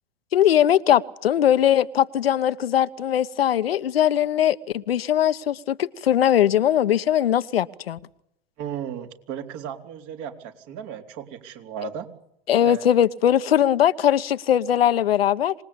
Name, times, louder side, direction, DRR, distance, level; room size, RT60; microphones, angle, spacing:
voice 1, 0.3-8.0 12.5-15.5, left 10 dB, 80° left, 1.1 m, -20 dB
voice 2, 8.6-12.1 12.6-12.8, right 9 dB, 50° right, 3.8 m, -35 dB
26.5 x 20.5 x 8.5 m
hypercardioid pair, 105°, 29 cm